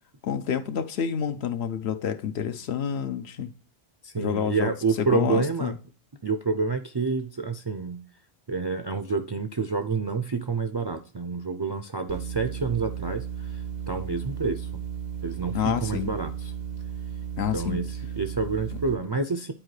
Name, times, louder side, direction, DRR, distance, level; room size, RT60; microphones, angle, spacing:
voice 1, 0.2-3.5 4.2-4.7 5.0-5.7 15.5-16.1 17.4-17.8 18.7-18.8, left 8 dB, 85° left, 0.9 m, -28 dB
voice 2, 4.0-5.8 6.2-8.0 8.5-14.8 15.2-16.5 17.5-19.5, right 4 dB, 40° right, 0.3 m, -28 dB
sound 1, 12.1-18.9, right 8 dB, 70° right, 0.8 m, -35 dB
10.5 x 4.4 x 3.2 m
omnidirectional pair, 1.1 m